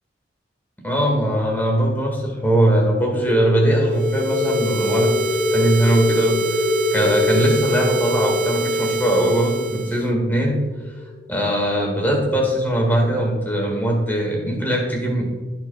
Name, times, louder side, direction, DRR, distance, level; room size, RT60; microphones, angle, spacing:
voice 1, 0.8-5.1 5.5-6.6 6.9-10.6 11.3-15.2, right 1 dB, 10° left, 0 dB, 1.8 m, -20 dB
sound 1, 3.3-11.6, left 3 dB, 35° left, 0.9 m, -26 dB
sound 2, 3.9-10.1, right 2 dB, 45° right, 0.4 m, -25 dB
15.0 x 6.1 x 2.3 m, 1.4 s
head